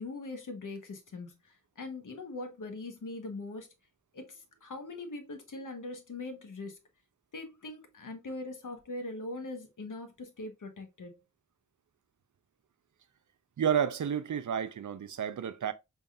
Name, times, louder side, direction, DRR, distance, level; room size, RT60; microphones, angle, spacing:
voice 1, 0.0-1.3 1.8-3.7 4.1-6.8 7.3-11.1, left 2 dB, 80° left, 1.0 m, -41 dB
voice 2, 13.6-15.7, right 8 dB, 75° right, 0.5 m, -30 dB
5.4 x 3.4 x 2.3 m
wide cardioid pair, 90°, 31 cm